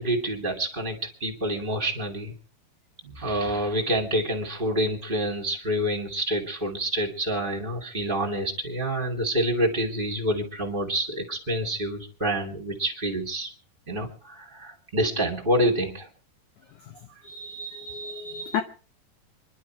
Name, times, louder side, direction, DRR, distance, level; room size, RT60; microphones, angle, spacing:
voice 1, 0.0-2.3 3.1-13.5 13.9-16.1, right 1 dB, 20° right, 1.7 m, -27 dB
voice 2, 17.3-18.6, left 5 dB, 85° left, 1.7 m, -32 dB
27.0 x 11.5 x 4.6 m
omnidirectional pair, 4.9 m